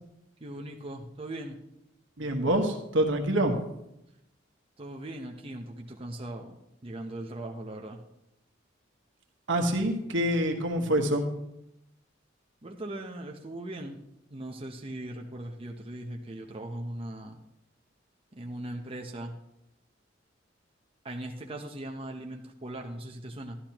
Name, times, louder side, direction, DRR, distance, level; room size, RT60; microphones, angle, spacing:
voice 1, 0.4-1.6 4.8-8.0 12.6-14.0 14.3-17.4 18.3-19.3 21.0-23.6, right 1 dB, 30° right, 1 dB, 0.8 m, -39 dB
voice 2, 2.2-3.6 9.5-11.2, right 1 dB, 75° right, 3 dB, 1.4 m, -26 dB
12.5 x 11.5 x 3.0 m, 0.83 s
head